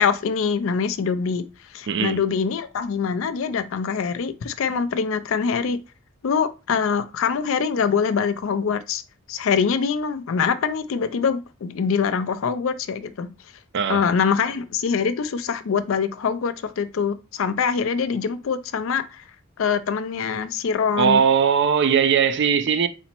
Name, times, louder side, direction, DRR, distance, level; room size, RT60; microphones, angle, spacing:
voice 1, 0.0-5.8 6.2-9.0 9.3-13.3 13.9-19.2 19.6-21.2, left 6 dB, 65° left, 0.4 m, -24 dB
voice 2, 1.9-2.2 13.7-14.0 21.0-22.9, right 7 dB, 55° right, 0.4 m, -19 dB
4.1 x 2.0 x 4.3 m
head